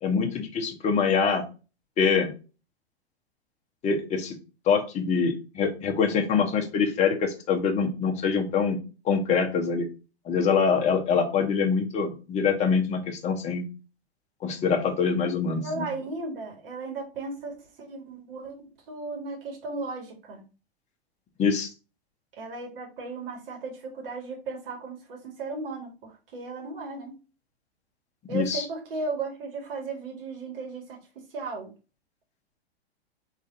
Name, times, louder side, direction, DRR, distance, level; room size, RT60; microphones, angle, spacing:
voice 1, 0.0-1.4 2.0-2.3 3.8-4.3 4.7-8.8 9.0-9.9 10.2-13.6 14.4-15.9 21.4-21.7 28.3-28.6, left 5 dB, 20° left, 2 dB, 0.9 m, -24 dB
voice 2, 15.6-20.4 22.4-27.1 28.3-31.0 31.3-31.7, right 3 dB, 60° right, 2 dB, 1.9 m, -36 dB
3.9 x 3.2 x 3.8 m, 0.32 s
hypercardioid pair, 110°, 32 cm